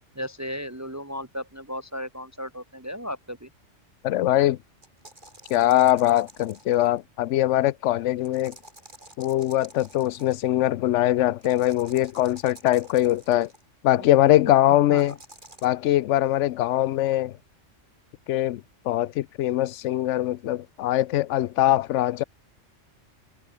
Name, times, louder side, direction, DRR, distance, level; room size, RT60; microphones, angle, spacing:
voice 1, 0.0-3.5 14.0-14.1 14.9-15.1, equal, 15° right, 1.7 m, -35 dB
voice 2, 4.0-4.6 5.5-8.6 9.2-13.5 13.8-15.2 15.6-17.4 18.3-22.2, left 14 dB, 75° left, 0.9 m, -22 dB
sound 1, 4.8-7.0 8.2-10.5 11.4-13.6 15.0-15.7, right 1 dB, 40° right, 5.2 m, -49 dB
omnidirectional pair, 1.3 m